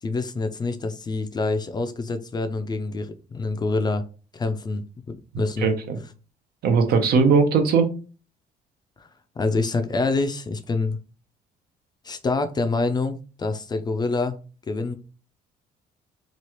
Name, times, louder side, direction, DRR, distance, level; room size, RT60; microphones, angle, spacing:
voice 1, 0.0-4.0 4.3-5.7 9.0-9.1 9.4-11.0 12.0-14.4 14.7-14.9, left 3 dB, 25° left, 8 dB, 0.4 m, -26 dB
voice 2, 5.6-6.0 6.6-7.9, right 5 dB, 65° right, 7 dB, 0.7 m, -19 dB
3.0 x 2.4 x 2.9 m, 0.35 s
cardioid pair, 110°, 17 cm